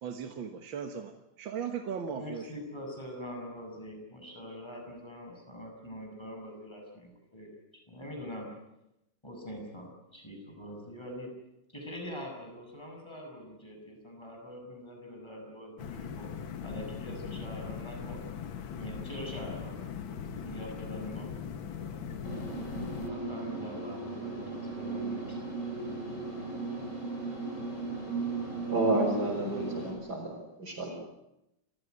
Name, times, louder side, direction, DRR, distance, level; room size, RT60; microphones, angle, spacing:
voice 1, 0.0-1.1 1.4-2.5, right 7 dB, 80° right, 6 dB, 2.1 m, -37 dB
voice 2, 2.1-8.5 9.2-11.3 11.7-16.3 16.6-18.2 18.8-22.1 23.0-25.4, equal, 15° left, 1 dB, 7.1 m, -44 dB
sound 1, 15.8-23.1, left 7 dB, 85° left, 2.1 m, -40 dB
sound 2, 22.2-29.9, right 4 dB, 40° left, 7.5 m, -36 dB
voice 3, 28.7-30.9, right 1 dB, 55° right, -5 dB, 5.7 m, -30 dB
28.0 x 16.0 x 9.6 m, 0.87 s
omnidirectional pair, 2.1 m